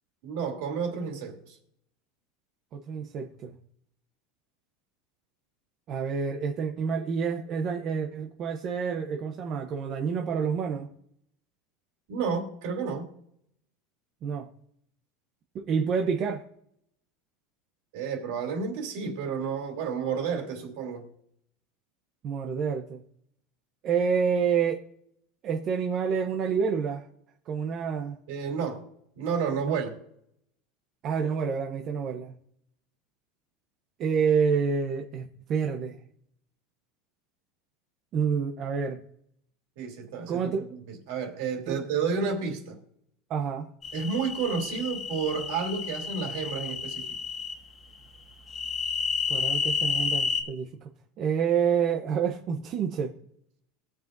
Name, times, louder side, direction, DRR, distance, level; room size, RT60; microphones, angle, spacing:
voice 1, 0.2-1.6 12.1-13.1 17.9-21.1 28.3-28.8 29.2-29.9 39.8-40.5 40.9-42.8 43.9-47.1, right 6 dB, 65° right, 3.0 m, -31 dB
voice 2, 2.7-3.6 5.9-10.9 14.2-14.5 15.5-16.4 22.2-23.0 23.8-24.8 25.4-27.1 27.5-28.2 29.6-29.8 31.0-32.3 34.0-36.0 38.1-39.0 40.3-40.6 41.7-41.8 43.3-43.7 49.3-50.7 51.2-53.1, right 6 dB, 35° right, 0.8 m, -28 dB
sound 1, 43.8-47.5 48.5-50.4, left 6 dB, 25° left, 1.4 m, -30 dB
22.0 x 7.4 x 2.6 m
supercardioid pair, 165°, 0 cm